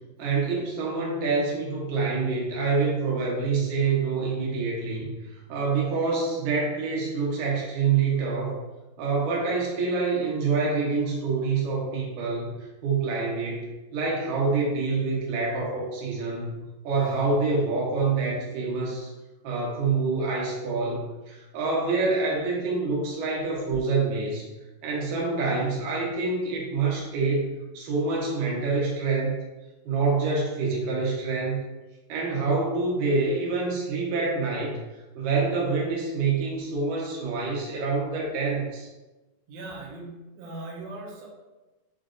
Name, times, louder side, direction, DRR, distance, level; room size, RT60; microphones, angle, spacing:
voice 1, 0.2-5.1 5.5-8.6 9.0-12.5 12.8-19.1 19.4-24.5 24.8-29.4 29.9-31.6 32.1-34.8 35.2-38.9, right 4 dB, 70° right, -4 dB, 2.5 m, -26 dB
voice 2, 39.5-41.3, right 2 dB, 85° right, -2 dB, 1.5 m, -39 dB
7.3 x 2.6 x 2.5 m, 1.1 s
omnidirectional pair, 4.2 m